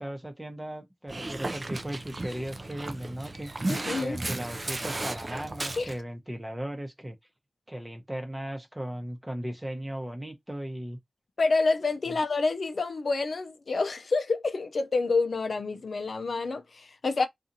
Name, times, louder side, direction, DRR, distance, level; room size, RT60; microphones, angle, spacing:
voice 1, 0.0-3.5 4.0-7.2 7.7-11.0 12.1-12.2, right 1 dB, 15° right, 0.9 m, -37 dB
Dog, 1.1-6.0, right 2 dB, 45° right, 0.4 m, -34 dB
voice 2, 3.7-4.2 5.8-5.9 11.4-17.3, left 3 dB, 70° left, 0.4 m, -28 dB
2.7 x 2.4 x 2.6 m
cardioid pair, 40°, 0 cm